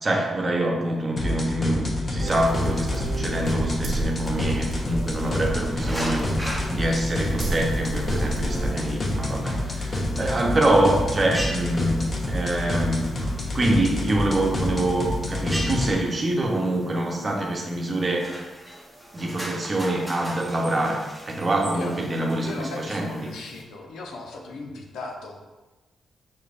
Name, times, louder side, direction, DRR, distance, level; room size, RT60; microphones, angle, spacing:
voice 1, 0.0-13.1 13.5-18.3 19.1-21.0 21.3-23.3, right 1 dB, 35° right, 0 dB, 0.8 m, -25 dB
sound 1, 1.2-15.9, left 1 dB, 40° left, 0.7 m, -28 dB
sound 2, 2.2-8.7, right 1 dB, 75° right, 0.8 m, -33 dB
sound 3, 5.8-23.6, equal, 5° left, 0.9 m, -40 dB
voice 2, 22.2-25.5, left 3 dB, 90° left, 1 dB, 0.6 m, -37 dB
5.6 x 3.3 x 2.5 m, 1.2 s
cardioid pair, 80°, 0 cm